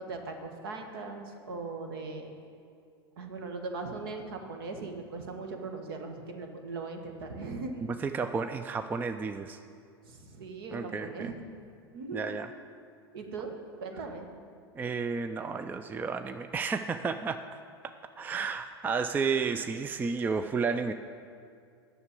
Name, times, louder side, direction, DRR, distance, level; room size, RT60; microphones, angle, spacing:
voice 1, 0.0-2.3 3.2-7.9 10.0-11.4 11.9-12.4 13.1-14.3, right 3 dB, 60° right, 4 dB, 1.4 m, -39 dB
voice 2, 7.8-9.6 10.7-11.3 12.1-12.5 14.7-17.4 17.8-20.9, right 5 dB, 15° right, 9 dB, 0.4 m, -32 dB
9.5 x 6.6 x 8.2 m, 2.4 s
figure-of-eight pair, 90°, 13 cm